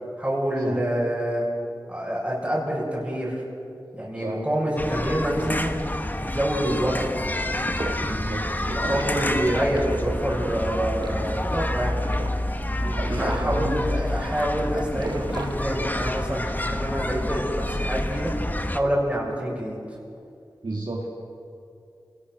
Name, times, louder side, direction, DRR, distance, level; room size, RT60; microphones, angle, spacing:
voice 1, 0.2-1.4 1.9-3.4 3.9-5.7 6.2-7.1 8.5-12.0 12.9-18.3 18.7-20.0, right 1 dB, 15° right, -5 dB, 6.4 m, -27 dB
sound 1, 4.8-18.8, left 1 dB, 20° left, 1.2 m, -28 dB
sound 2, 7.4-16.3, right 2 dB, 60° right, 1.6 m, -38 dB
voice 2, 8.0-9.1 12.8-13.9 20.6-21.1, right 2 dB, 85° right, -3 dB, 2.6 m, -32 dB
27.5 x 19.0 x 6.2 m, 2.5 s
wide cardioid pair, 50°, 8 cm